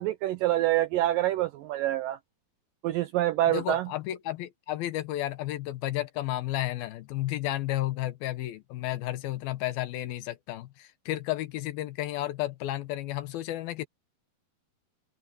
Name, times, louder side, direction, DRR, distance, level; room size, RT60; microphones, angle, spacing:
voice 1, 0.0-2.2 2.8-3.9, right 14 dB, 85° right, 2.0 m, -26 dB
voice 2, 3.5-13.9, left 14 dB, 75° left, 2.6 m, -32 dB
open air
omnidirectional pair, 4.6 m